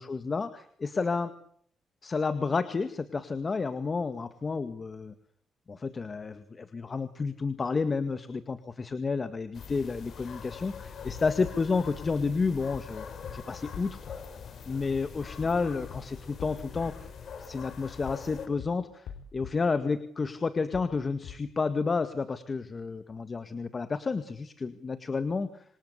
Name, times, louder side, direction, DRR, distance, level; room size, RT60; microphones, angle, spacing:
voice 1, 0.0-1.3 2.0-5.1 5.7-13.1 13.3-14.0 14.7-16.9 17.4-25.6, left 4 dB, 35° left, 10 dB, 1.9 m, -31 dB
sound 1, 9.5-18.5, left 6 dB, 55° left, 5.6 m, -43 dB
sound 2, 11.1-11.5 12.7-12.9 13.2-13.3 13.7-14.2 15.4-15.6 15.9-16.0 16.4-16.8 18.1-18.3 18.6-18.7 19.1-19.5 20.7-20.9 21.2-21.3, left 8 dB, 90° left, 4.5 m, -42 dB
27.0 x 25.0 x 8.3 m, 0.65 s
cardioid pair, 105°, 0 cm